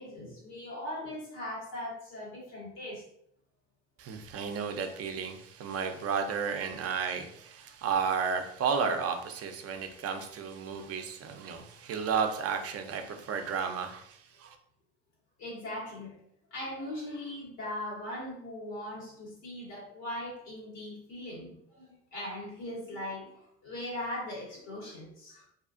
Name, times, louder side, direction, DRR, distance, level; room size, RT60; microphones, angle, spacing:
voice 1, 0.0-3.0 9.9-10.0 10.9-11.0 11.3-11.4 13.6-13.7 15.4-16.2 16.5-25.5, left 1 dB, 90° left, -6 dB, 1.5 m, -40 dB
voice 2, 4.0-14.6, right 6 dB, 50° right, 6 dB, 0.5 m, -33 dB
2.7 x 2.3 x 2.5 m, 0.71 s
supercardioid pair, 70°, 32 cm